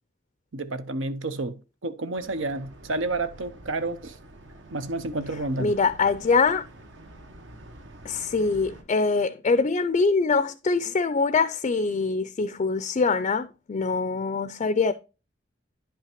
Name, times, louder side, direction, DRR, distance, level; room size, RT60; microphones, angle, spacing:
voice 1, 0.5-1.5 1.8-4.2 4.7-5.7, right 2 dB, 90° right, 0.8 m, -30 dB
sound 1, 2.2-8.8, right 1 dB, 70° right, 1.1 m, -47 dB
voice 2, 5.6-6.6 8.1-14.9, left 4 dB, 35° left, 0.4 m, -24 dB
10.0 x 5.7 x 2.9 m
head